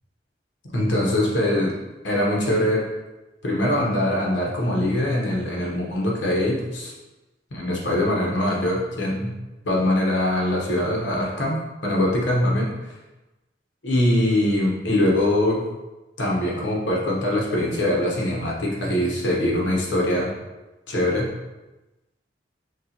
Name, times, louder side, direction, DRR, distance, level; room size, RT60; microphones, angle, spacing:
voice 1, 0.7-1.7 2.0-2.8 3.4-6.9 7.5-9.3 9.6-12.9 13.8-15.6 16.2-20.3 20.9-21.3, left 1 dB, 90° left, -3 dB, 1.0 m, -22 dB
6.5 x 2.4 x 2.8 m, 1.1 s
head